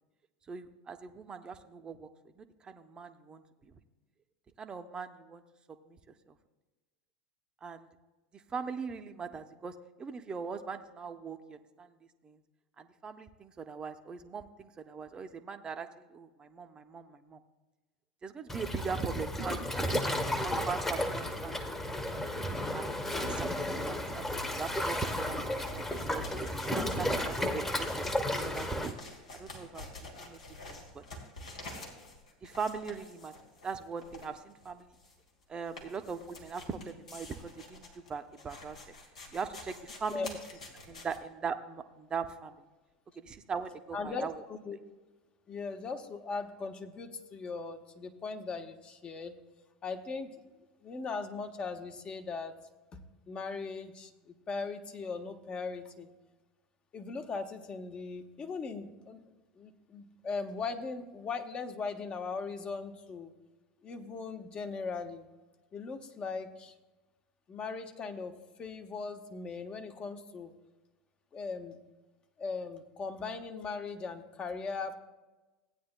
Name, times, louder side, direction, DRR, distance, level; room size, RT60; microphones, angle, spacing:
voice 1, 0.5-2.1 2.4-3.8 4.6-5.4 5.9-6.0 7.6-7.9 8.3-12.0 12.2-12.4 12.8-17.4 18.2-21.8 22.1-22.9 23.3-26.2 26.6-29.0 29.4-31.0 32.4-33.3 33.6-34.9 35.5-38.8 39.3-40.4 40.9-42.5 43.2-44.3, right 5 dB, 25° right, 7 dB, 0.7 m, -40 dB
Waves surf, 18.5-28.9, left 1 dB, 10° left, 1.1 m, -33 dB
sound 1, 25.6-41.2, left 2 dB, 80° left, 2.2 m, -48 dB
voice 2, 43.9-44.8 45.5-49.3 49.8-50.4 50.8-52.6 52.9-53.0 53.3-56.1 56.9-59.2 59.6-63.3 63.8-65.3 65.7-66.7 67.5-68.3 68.6-70.5 71.3-71.8 72.4-75.0, left 4 dB, 30° left, 7 dB, 1.0 m, -39 dB
16.5 x 9.4 x 2.2 m, 1.2 s
figure-of-eight pair, 80°, 4 cm